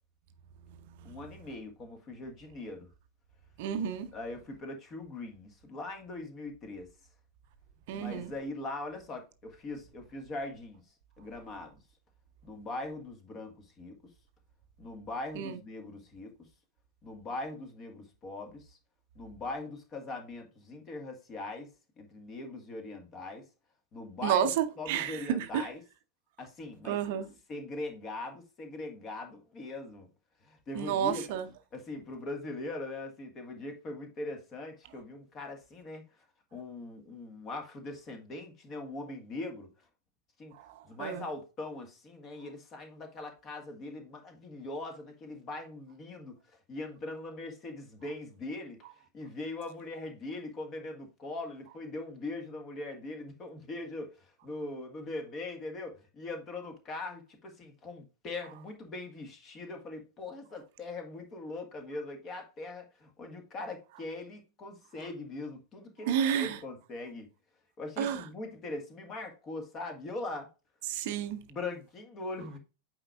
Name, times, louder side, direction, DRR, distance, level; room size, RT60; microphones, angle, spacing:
voice 1, 1.0-2.9 4.1-6.9 7.9-10.8 11.2-11.8 12.4-14.0 14.8-16.3 17.0-18.8 19.1-21.7 22.0-23.4 23.9-24.5 24.8-25.8 26.4-27.0 27.5-30.1 30.4-31.3 31.7-36.0 36.5-39.7 40.4-40.5 40.8-46.4 46.7-48.8 49.1-67.3 67.8-70.5 71.5-72.6, left 2 dB, 30° left, 1.6 m, -41 dB
voice 2, 3.6-4.1 7.9-8.3 15.4-15.5 24.2-25.7 26.9-27.3 30.7-31.4 40.5-40.7 41.0-41.2 66.1-66.6 68.0-68.2 70.9-71.4, right 9 dB, 50° right, 0.7 m, -30 dB
8.6 x 4.6 x 2.4 m
figure-of-eight pair, 90°, 0 cm